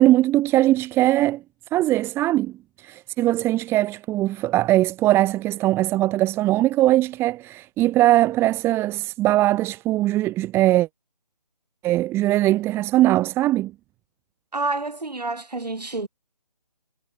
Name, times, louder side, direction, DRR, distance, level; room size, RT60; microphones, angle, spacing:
voice 1, 0.0-1.4 1.7-10.9 11.8-13.7, right 15 dB, 10° right, 2.3 m, -20 dB
voice 2, 14.5-16.1, right 3 dB, 85° right, 8.0 m, -28 dB
figure-of-eight pair, 155°, 20 cm